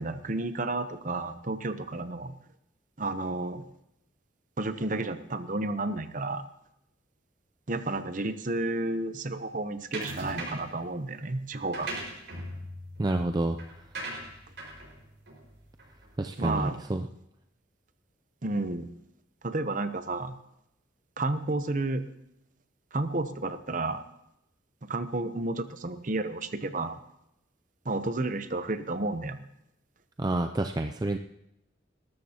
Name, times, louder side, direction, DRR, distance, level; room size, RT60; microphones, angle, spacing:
voice 1, 0.0-2.3 3.0-3.6 4.6-6.4 7.7-11.9 16.4-16.8 18.4-18.9 19.4-20.4 21.2-22.0 22.9-24.0 24.8-27.0 27.8-29.4, right 2 dB, 40° right, 10 dB, 0.8 m, -31 dB
sound 1, 9.9-10.8 11.5-16.2, right 2 dB, 65° right, 5.2 m, -40 dB
voice 2, 13.0-13.6 16.2-17.1 30.2-31.2, right 2 dB, 20° right, 6 dB, 0.4 m, -28 dB
20.0 x 13.0 x 2.9 m, 0.84 s
head